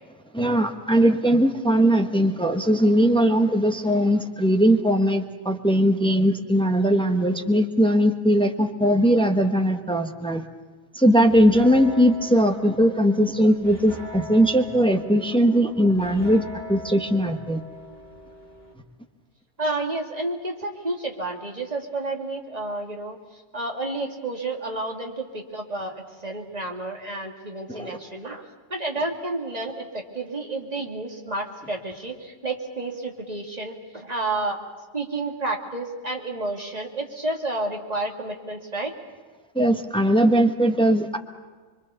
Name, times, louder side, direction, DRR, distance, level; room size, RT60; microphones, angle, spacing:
voice 1, 0.3-10.5 10.9-16.4 16.7-17.6 27.7-28.0 39.5-41.2, equal, 5° left, 5 dB, 1.1 m, -20 dB
sound 1, 11.1-18.7, left 2 dB, 45° left, 3.5 m, -41 dB
voice 2, 19.6-34.6 34.9-38.9, right 2 dB, 35° right, 1 dB, 2.5 m, -30 dB
25.5 x 23.5 x 6.9 m, 1.5 s
omnidirectional pair, 1.1 m